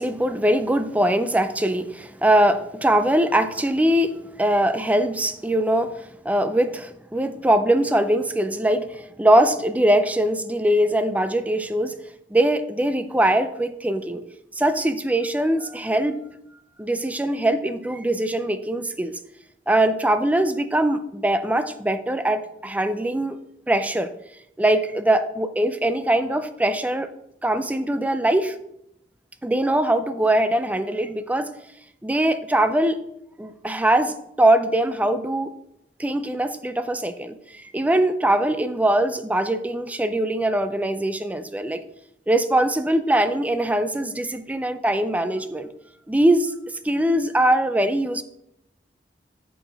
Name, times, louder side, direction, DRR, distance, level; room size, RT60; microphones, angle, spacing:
voice 1, 0.0-12.0 12.3-14.2 14.6-16.2 16.8-19.1 19.7-23.4 23.7-24.1 24.6-27.1 27.4-28.6 29.4-31.5 32.0-33.0 33.4-35.5 36.0-41.8 42.3-45.7 46.1-46.5 46.8-48.2, right 1 dB, 10° right, 10 dB, 0.4 m, -22 dB
8.6 x 6.1 x 3.4 m, 0.78 s
head